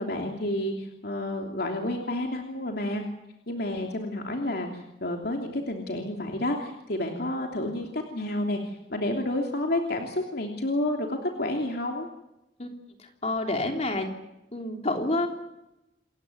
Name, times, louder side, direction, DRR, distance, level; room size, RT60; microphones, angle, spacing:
voice 1, 0.0-3.0 3.5-12.1, left 1 dB, 65° left, 2 dB, 3.0 m, -30 dB
voice 2, 13.2-14.1 14.5-15.3, left 2 dB, 40° left, 3 dB, 3.3 m, -28 dB
28.5 x 15.5 x 9.6 m, 0.90 s
head